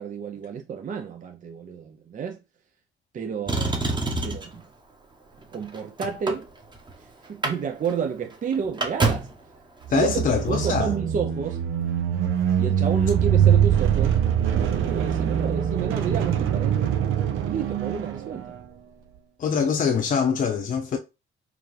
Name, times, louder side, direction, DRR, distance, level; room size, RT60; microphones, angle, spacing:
voice 1, 0.0-2.4 3.1-3.8 4.2-4.6 5.5-6.5 7.0-9.3 9.9-10.1 10.5-11.6 12.6-14.2 14.5-16.8 17.5-18.6, right 6 dB, 40° right, 0.6 m, -30 dB
Motor vehicle (road), 3.5-4.6 5.4-6.9 7.2-7.6 7.8-7.9 8.3-9.4 10.5-10.6, right 3 dB, 20° right, 1.0 m, -27 dB
sound 1, 9.8-18.6, right 9 dB, 85° right, 0.6 m, -23 dB
voice 2, 9.9-10.9 19.4-21.0, left 6 dB, 45° left, 0.7 m, -23 dB
4.8 x 2.4 x 3.2 m
cardioid pair, 90°, 20 cm